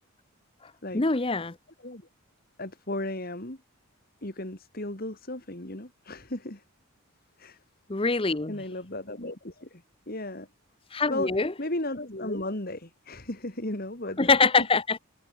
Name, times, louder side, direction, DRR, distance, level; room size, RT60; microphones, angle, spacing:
voice 1, 0.9-1.5 7.9-8.5 10.9-11.5 14.2-15.0, left 4 dB, 25° left, 0.7 m, -24 dB
voice 2, 2.6-3.6 4.2-6.6 7.4-7.6 8.5-10.5 11.1-11.3 11.6-14.3 14.6-14.7, left 1 dB, 40° left, 2.5 m, -35 dB
head